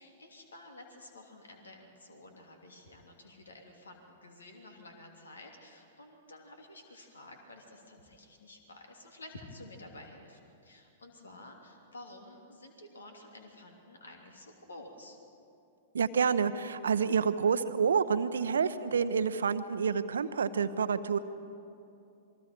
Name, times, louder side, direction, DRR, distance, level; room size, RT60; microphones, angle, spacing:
voice 1, 0.0-15.2, left 2 dB, 75° left, 2 dB, 2.9 m, -51 dB
voice 2, 15.9-21.2, right 6 dB, 70° right, 12 dB, 0.8 m, -28 dB
27.5 x 22.5 x 4.5 m, 2.6 s
figure-of-eight pair, 105°, 0 cm